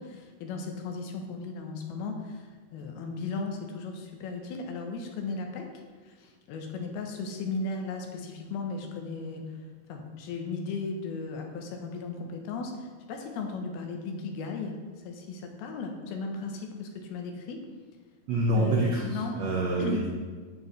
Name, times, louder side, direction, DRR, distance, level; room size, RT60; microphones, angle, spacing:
voice 1, 0.0-5.7 6.0-9.5 9.9-14.8 15.0-17.6 18.6-19.3 19.8-20.1, left 4 dB, 90° left, 3 dB, 2.9 m, -36 dB
voice 2, 18.3-20.1, right 2 dB, 80° right, -3 dB, 1.5 m, -27 dB
8.6 x 7.7 x 3.2 m, 1.5 s
omnidirectional pair, 4.3 m